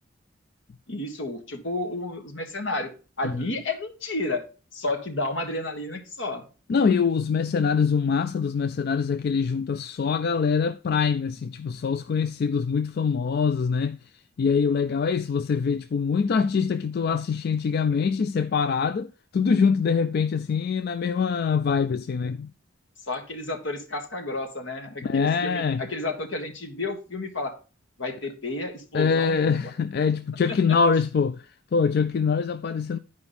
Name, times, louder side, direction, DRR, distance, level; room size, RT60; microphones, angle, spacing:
voice 1, 0.9-2.9 3.2-4.4 4.7-6.4 23.1-27.6 28.0-29.7 30.7-30.8, left 2 dB, 75° left, 1.6 m, -31 dB
voice 2, 6.7-14.0 14.4-22.5 25.0-25.8 28.9-33.0, left 5 dB, 55° left, 0.3 m, -24 dB
11.0 x 4.8 x 4.1 m
head